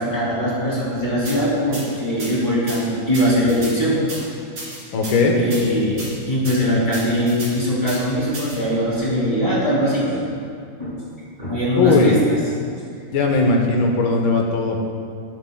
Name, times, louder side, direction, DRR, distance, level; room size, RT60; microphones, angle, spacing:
voice 1, 0.0-4.3 5.4-10.2 10.8-10.9 11.4-12.4 13.3-13.5, equal, 20° left, -7 dB, 2.3 m, -21 dB
sound 1, 1.2-1.4 1.7-1.8 2.2-2.3 2.7-2.8 3.1-3.7 4.1-4.2 4.6-5.1 5.5-5.6 6.0-6.1 6.4-6.6 6.9-7.5 7.9-8.0 8.3-8.6, right 2 dB, 70° right, 2.9 m, -33 dB
voice 2, 4.9-5.4 11.8-12.1 13.1-14.8, left 3 dB, 85° left, 1 dB, 1.7 m, -18 dB
14.5 x 7.1 x 2.3 m, 2.3 s
omnidirectional pair, 2.0 m